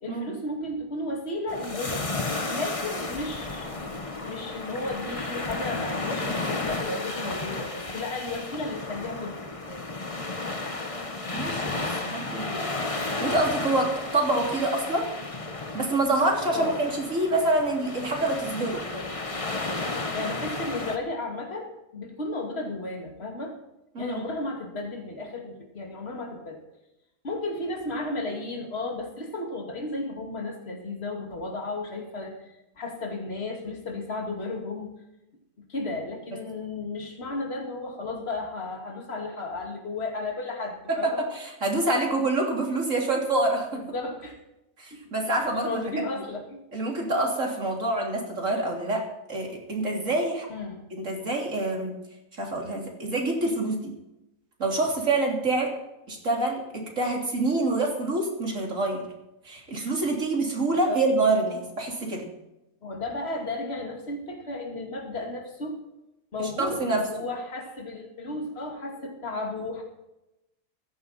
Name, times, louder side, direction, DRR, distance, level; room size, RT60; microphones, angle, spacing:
voice 1, 0.0-2.2 2.5-3.7 4.3-9.6 16.5-17.0 18.9-19.1 20.1-23.5 24.0-26.6 27.2-34.9 35.7-41.3 43.7-44.4 44.9-45.0 45.5-46.6 50.5-50.8 60.7-61.0 62.8-65.8 66.3-69.8, left 2 dB, 45° left, 1 dB, 2.8 m, -34 dB
sound 1, 1.5-21.0, left 2 dB, 25° left, 1.3 m, -33 dB
voice 2, 11.3-15.1 15.7-18.8 24.0-24.2 41.0-43.8 44.8-45.8 46.2-46.3 46.7-50.5 50.9-51.9 52.4-53.9 54.6-55.7 56.1-59.0 59.5-62.2 66.4-67.0, right 2 dB, 65° right, 0 dB, 3.7 m, -26 dB
16.5 x 14.5 x 4.3 m, 0.92 s
omnidirectional pair, 1.5 m